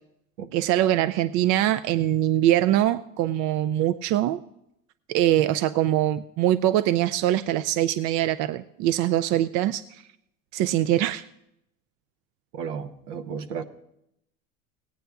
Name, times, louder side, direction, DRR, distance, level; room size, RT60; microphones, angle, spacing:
voice 1, 0.5-4.4 5.1-10.0 10.5-11.2, right 13 dB, 50° right, 13 dB, 0.5 m, -23 dB
voice 2, 12.5-13.6, right 6 dB, 70° right, 9 dB, 1.0 m, -33 dB
17.5 x 9.3 x 3.5 m, 0.80 s
hypercardioid pair, 80°, 39 cm